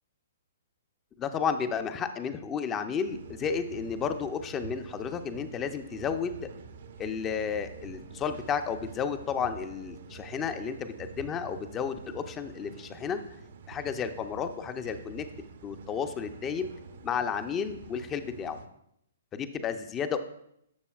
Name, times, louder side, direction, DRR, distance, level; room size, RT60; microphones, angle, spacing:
voice 1, 1.2-6.5 7.0-13.2 13.7-15.3 15.6-16.7 17.0-18.6 19.3-20.2, left 6 dB, 20° left, 9 dB, 0.6 m, -32 dB
sound 1, 3.0-18.7, right 5 dB, 60° right, 0.8 m, -47 dB
11.5 x 6.8 x 2.4 m, 0.75 s
figure-of-eight pair, 120°, 0 cm